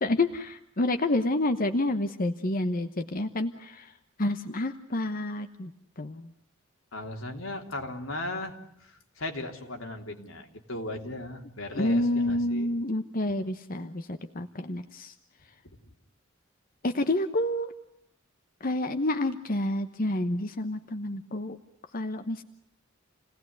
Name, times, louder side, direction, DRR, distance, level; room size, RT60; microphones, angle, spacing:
voice 1, 0.0-3.9 4.2-5.7 6.0-6.3 11.7-15.1 16.8-17.7 18.6-21.6 21.9-22.4, left 1 dB, 45° left, 8 dB, 1.1 m, -29 dB
voice 2, 6.9-8.5 8.8-12.7 15.6-15.8, left 2 dB, 85° left, 3 dB, 3.3 m, -37 dB
29.0 x 18.5 x 9.6 m, 0.77 s
head